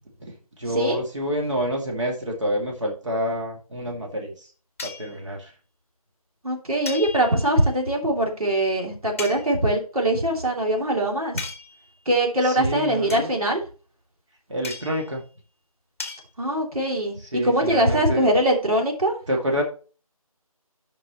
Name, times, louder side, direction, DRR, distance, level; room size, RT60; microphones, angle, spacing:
voice 1, 0.2-4.5 4.8-5.5 12.4-13.3 14.5-15.2 17.3-18.3 19.3-19.6, equal, 55° right, 0 dB, 2.3 m, -28 dB
sound 1, 4.8-5.1 6.8-7.6 9.2-9.5 11.4-11.9 13.1-13.3 14.6-15.1 16.0-16.2, left 4 dB, 20° left, 0.9 m, -36 dB
voice 2, 6.4-11.5 12.0-13.6 16.4-19.1, right 1 dB, 70° right, 0 dB, 2.9 m, -22 dB
11.5 x 5.6 x 3.0 m, 0.36 s
figure-of-eight pair, 165°, 19 cm